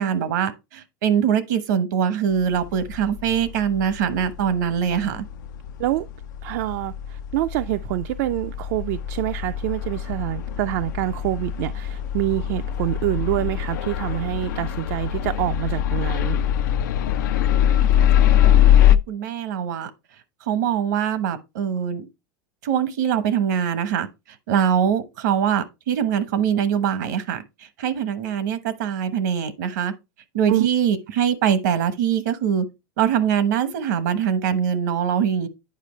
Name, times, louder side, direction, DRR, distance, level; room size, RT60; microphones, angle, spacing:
voice 1, 0.0-5.2 17.6-19.9 20.4-22.1 22.6-24.1 24.5-29.9 30.3-32.6 33.0-35.5, right 8 dB, 80° right, 1.0 m, -23 dB
sound 1, 2.4-19.0, left 10 dB, 90° left, 0.4 m, -23 dB
voice 2, 6.4-16.4 30.5-30.7, right 16 dB, 65° right, 0.4 m, -26 dB
9.2 x 4.9 x 3.1 m
supercardioid pair, 125°, 10 cm